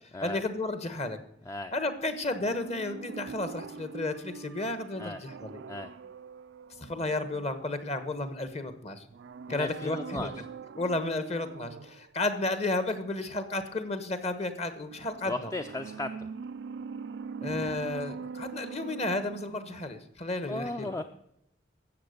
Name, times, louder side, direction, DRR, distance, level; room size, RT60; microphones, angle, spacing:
voice 1, 0.2-1.2 1.7-5.6 6.8-9.0 9.5-10.3 10.8-15.5 17.4-20.9, left 2 dB, 35° left, 10 dB, 1.1 m, -32 dB
sound 1, 2.3-8.0 9.1-12.1 14.9-20.1 20.4-20.5, right 5 dB, 70° right, 0.4 m, -43 dB
voice 2, 9.5-10.3 15.3-16.3 20.5-21.0, left 2 dB, 15° left, 8 dB, 0.4 m, -36 dB
13.5 x 7.9 x 6.6 m, 0.76 s
head